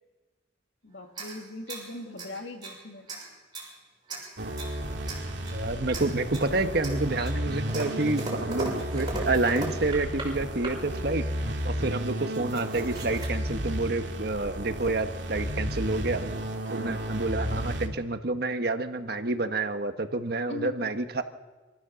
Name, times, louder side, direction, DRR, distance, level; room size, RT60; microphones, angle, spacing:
voice 1, 0.8-3.1 20.5-21.0, left 2 dB, 70° left, 4 dB, 2.4 m, -40 dB
sound 1, 1.1-2.8 3.1-3.7 4.1-4.8 5.1-5.6 5.9-6.5 6.8-10.3 10.6-11.1 11.8-11.9 12.1-13.3, right 2 dB, 25° right, 6.3 m, -38 dB
sound 2, 4.4-17.9, right 1 dB, 75° right, 2.4 m, -33 dB
voice 2, 5.5-11.2 11.6-16.2 16.7-21.2, right 2 dB, 60° right, 7 dB, 1.4 m, -29 dB
26.5 x 14.5 x 7.0 m, 1.2 s
head